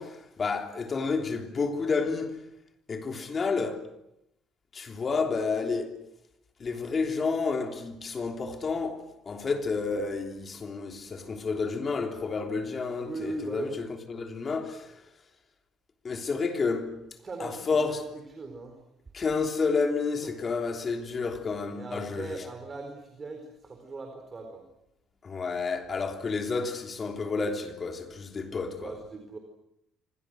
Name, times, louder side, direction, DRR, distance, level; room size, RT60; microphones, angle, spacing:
voice 1, 0.0-2.4 2.9-3.9 4.7-6.0 6.6-15.0 16.0-16.9 17.4-18.0 19.1-22.4 25.2-29.0, left 4 dB, 30° left, 3.3 m, -30 dB
voice 2, 13.0-13.8 17.2-18.8 20.2-20.5 21.7-24.7 28.7-29.4, right 3 dB, 25° right, 4.5 m, -39 dB
29.0 x 26.0 x 6.4 m
cardioid pair, 140°, 0 cm